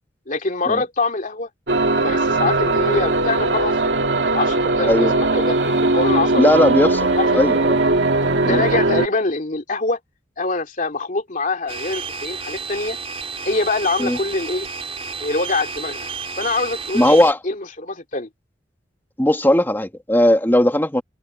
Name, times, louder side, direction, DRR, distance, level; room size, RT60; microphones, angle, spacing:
voice 1, 0.3-1.5 1.9-3.8 4.3-5.6 5.9-6.5 7.1-7.4 8.4-10.0 10.4-13.0 13.4-14.7 15.2-16.1 16.4-17.2 17.4-18.3, left 3 dB, 50° left, 2.9 m, -24 dB
sound 1, 1.7-9.1, right 2 dB, 80° right, 2.4 m, -19 dB
voice 2, 6.3-7.1 7.3-7.8 8.4-8.6 14.0-14.2 16.9-17.4 19.2-21.0, left 1 dB, 10° left, 1.7 m, -17 dB
sound 2, 11.7-17.3, right 5 dB, 35° right, 3.8 m, -31 dB
head